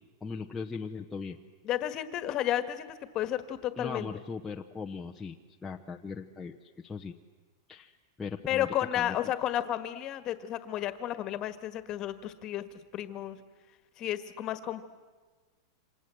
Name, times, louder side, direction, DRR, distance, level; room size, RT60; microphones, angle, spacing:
voice 1, 0.2-1.4 3.8-6.6 6.8-7.1 7.7-9.2, left 5 dB, 10° left, 0 dB, 0.9 m, -39 dB
voice 2, 1.6-4.1 8.5-13.4 14.0-14.8, left 12 dB, 30° left, 11 dB, 1.7 m, -32 dB
28.5 x 26.5 x 7.8 m, 1.4 s
supercardioid pair, 160°, 2 cm